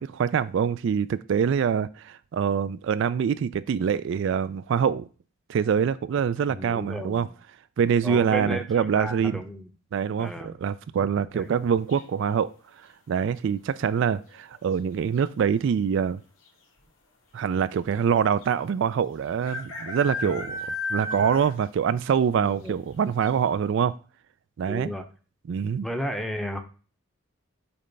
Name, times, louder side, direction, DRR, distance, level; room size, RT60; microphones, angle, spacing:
voice 1, 0.0-5.1 5.5-7.3 7.8-9.4 9.9-12.5 13.1-16.2 17.3-23.9 24.6-24.9 25.5-25.9, right 7 dB, 60° right, 0.3 m, -25 dB
voice 2, 6.5-7.3 8.0-9.7 10.2-10.5 11.3-11.5 20.2-20.5 22.4-22.8 24.7-25.0 25.8-26.6, equal, ahead, 0.7 m, -33 dB
sound 1, 11.9-12.4 14.2-14.6 14.8-14.9 15.2-15.7 16.5-16.6 16.8-16.9 18.4-18.5 19.4-21.7 22.1-22.2 22.7-22.8 23.2-23.3, left 2 dB, 80° left, 2.6 m, -34 dB
7.0 x 3.2 x 5.3 m
head